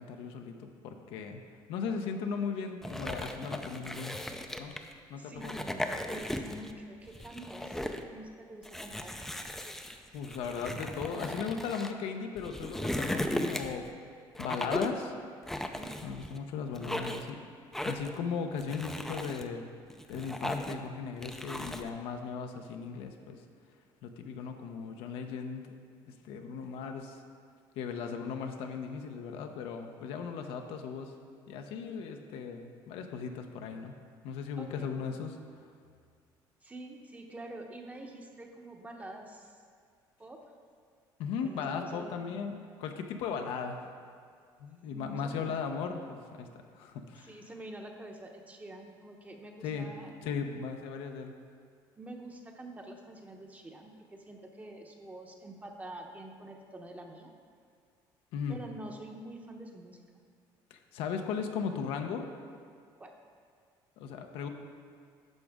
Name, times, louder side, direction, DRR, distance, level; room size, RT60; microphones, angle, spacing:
voice 1, 0.0-1.4 1.7-4.2 4.6-4.7 5.1-5.6 10.1-13.9 14.4-15.2 16.0-17.4 17.8-19.6 20.1-23.4 24.0-25.7 26.1-27.2 27.8-31.1 31.5-34.0 34.2-35.3 41.2-43.8 44.6-47.3 49.6-49.9 50.2-51.3 58.3-58.6 60.7-62.3 64.0-64.5, left 6 dB, 80° left, 4 dB, 0.8 m, -37 dB
sound 1, 2.8-4.9 5.4-6.7 7.1-8.0 8.6-11.9 12.4-13.9 14.4-15.0 15.5-16.4 16.7-17.3 17.7-18.2 18.6-19.4 19.9-20.9 21.2-21.9, left 1 dB, 5° left, 0.5 m, -37 dB
voice 2, 5.2-7.8 8.1-9.1 15.6-16.0 34.6-34.9 36.6-39.6 40.2-40.5 41.4-42.3 44.9-45.5 47.2-50.1 52.0-57.3 58.5-60.0 63.0-63.2, right 1 dB, 15° right, 2 dB, 0.9 m, -47 dB
10.5 x 6.1 x 3.6 m, 2.1 s
cardioid pair, 105°, 9 cm